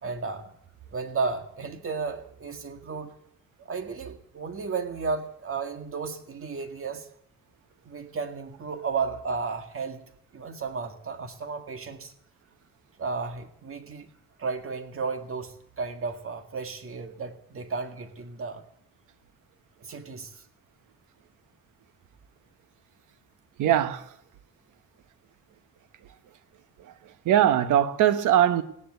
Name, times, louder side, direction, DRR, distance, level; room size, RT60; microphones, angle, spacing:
voice 1, 0.0-0.5 0.9-3.1 3.6-7.1 7.8-10.0 10.3-12.1 13.0-14.1 14.4-18.6 19.8-20.4, right 4 dB, 45° right, 2.0 m, -33 dB
voice 2, 23.6-24.2 26.8-28.6, right 11 dB, 85° right, 1.2 m, -22 dB
17.0 x 10.5 x 8.0 m
cardioid pair, 90°, 30 cm